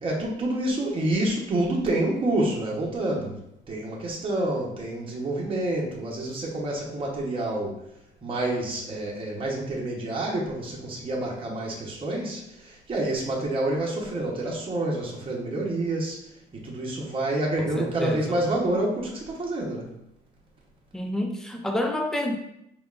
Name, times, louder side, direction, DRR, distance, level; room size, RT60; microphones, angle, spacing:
voice 1, 0.0-3.4 3.7-7.8 8.2-16.2 16.5-19.9, right 1 dB, 30° right, -3 dB, 0.9 m, -28 dB
voice 2, 17.6-18.4 20.9-22.4, left 1 dB, 5° left, 3 dB, 0.4 m, -29 dB
4.9 x 3.4 x 2.4 m, 0.79 s
cardioid pair, 155°, 19 cm